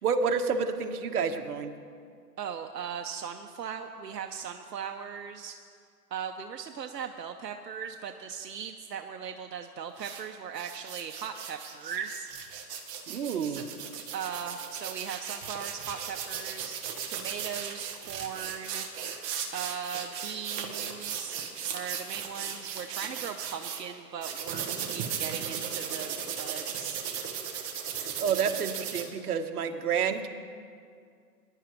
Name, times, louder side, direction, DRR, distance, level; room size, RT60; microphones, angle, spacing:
voice 1, 0.0-1.7 13.1-13.6 28.0-30.3, right 6 dB, 65° right, 6 dB, 1.2 m, -29 dB
voice 2, 2.4-5.6 6.1-12.3 13.4-13.6 14.1-19.1 19.5-27.0, right 7 dB, 85° right, 5 dB, 0.8 m, -39 dB
sound 1, 9.9-10.2 10.5-23.8 24.2-29.0, right 8 dB, 20° right, 0.9 m, -36 dB
21.0 x 11.0 x 3.0 m, 2.2 s
hypercardioid pair, 140°, 48 cm